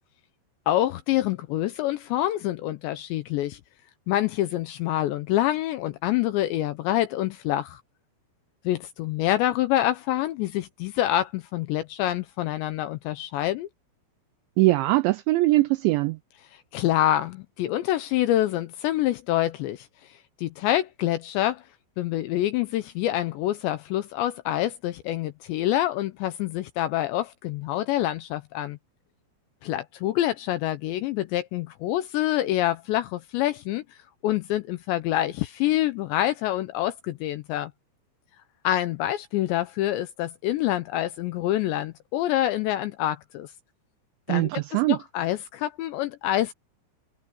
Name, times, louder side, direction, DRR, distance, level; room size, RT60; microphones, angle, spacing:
voice 1, 0.7-3.6 4.1-7.8 8.6-13.7 16.5-19.9 20.4-21.6 22.0-28.8 29.6-33.8 34.2-37.7 38.6-43.5 44.3-46.5, left 13 dB, 80° left, 2.7 m, -26 dB
voice 2, 14.6-16.2 44.3-45.0, right 19 dB, 85° right, 2.6 m, -21 dB
omnidirectional pair, 5.9 m